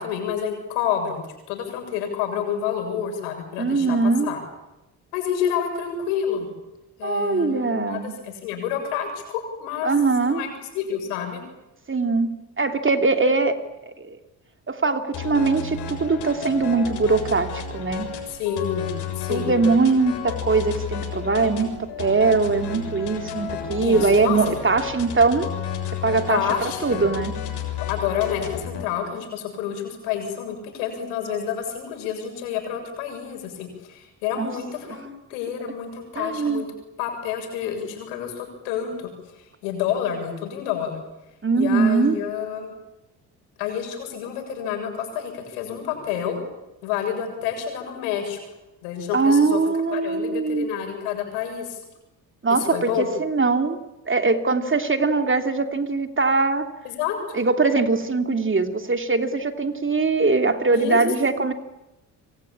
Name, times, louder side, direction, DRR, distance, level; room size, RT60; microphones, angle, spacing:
voice 1, 0.0-4.4 5.1-6.5 7.0-9.9 10.2-11.4 18.3-19.6 23.8-24.4 26.3-27.1 27.9-35.0 35.3-36.7 37.0-41.0 41.5-42.7 43.6-46.4 46.8-48.4 48.8-49.6 49.9-51.8 52.5-53.1 56.8-57.4 60.7-61.0, left 8 dB, 90° left, 4 dB, 7.3 m, -29 dB
voice 2, 3.6-4.3 7.0-8.1 9.8-10.4 11.9-12.3 12.6-13.6 13.9-14.2 14.7-18.1 19.3-25.5 25.9-26.5 26.8-27.3 34.4-34.5 34.9-35.0 36.1-36.6 41.4-42.2 49.1-50.7 52.4-53.8 54.1-56.7 57.3-61.5, right 4 dB, 25° right, 7 dB, 2.9 m, -21 dB
sound 1, 15.1-28.8, left 7 dB, 65° left, 7.0 m, -32 dB
27.5 x 24.5 x 8.9 m, 0.94 s
supercardioid pair, 60°, 43 cm